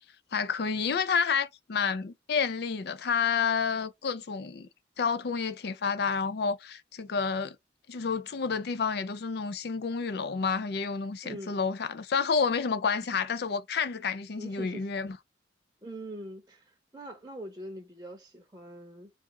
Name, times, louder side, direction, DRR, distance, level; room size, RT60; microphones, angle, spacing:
voice 1, 0.3-4.7 5.0-7.6 7.9-15.2, left 5 dB, 60° left, 0.5 m, -29 dB
voice 2, 11.2-11.6 14.4-14.9 15.8-19.1, right 1 dB, 15° right, 0.8 m, -43 dB
3.6 x 2.5 x 4.6 m
head